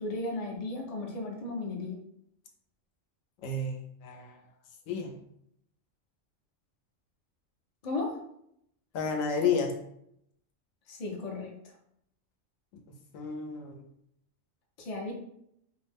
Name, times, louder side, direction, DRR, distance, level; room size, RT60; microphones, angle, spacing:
voice 1, 0.0-2.0 7.8-8.2 10.9-11.5 14.8-15.1, left 2 dB, 45° left, 0 dB, 0.5 m, -35 dB
voice 2, 3.4-4.4 4.9-5.2 8.9-9.7 13.1-13.8, left 5 dB, 80° left, 2 dB, 1.0 m, -31 dB
2.7 x 2.0 x 3.4 m, 0.73 s
omnidirectional pair, 1.3 m